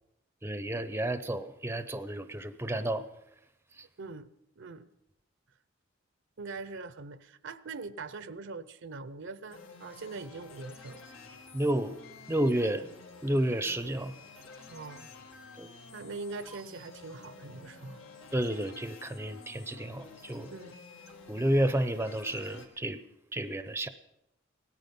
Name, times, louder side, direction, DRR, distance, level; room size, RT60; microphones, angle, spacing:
voice 1, 0.4-3.0 11.5-12.0 12.3-12.8 13.2-14.1 15.6-15.7 18.3-20.5 21.3-23.0 23.3-23.9, right 1 dB, 10° right, 12 dB, 0.6 m, -31 dB
voice 2, 4.0-4.9 6.4-11.0 14.7-15.1 15.9-18.0 20.5-20.8, right 3 dB, 65° right, 15 dB, 0.7 m, -42 dB
sound 1, 9.5-22.7, left 3 dB, 85° left, 2.0 m, -51 dB
17.5 x 13.5 x 5.3 m, 0.84 s
head